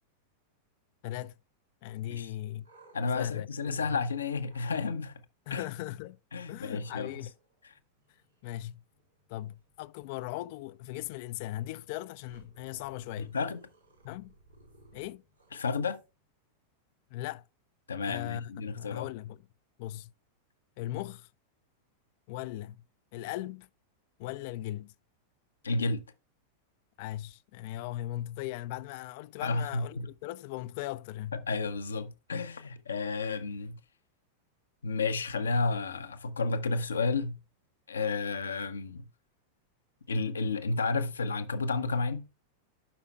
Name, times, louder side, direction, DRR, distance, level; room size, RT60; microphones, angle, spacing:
voice 1, 1.0-1.3 1.8-2.7 3.1-3.5 3.8-4.0 5.5-6.2 6.5-7.3 8.4-8.8 9.3-13.4 14.0-14.3 14.9-15.2 17.1-17.4 18.0-18.5 18.8-19.4 19.8-20.1 20.8-21.3 22.3-22.8 23.1-23.7 24.2-24.9 27.0-31.4, left 14 dB, 50° left, 0.3 m, -38 dB
sound 1, 2.3-4.0 4.4-4.9 6.8-16.3, right 2 dB, 85° right, 3.2 m, -61 dB
voice 2, 2.9-5.2 5.5-5.6 6.3-7.1 13.2-13.7 15.5-16.0 17.9-19.1 25.6-26.0 29.4-30.1 31.3-33.8 34.8-37.4 37.9-39.0 40.1-42.3, left 4 dB, 70° left, 0.7 m, -31 dB
11.5 x 5.7 x 2.3 m
figure-of-eight pair, 90°, 0 cm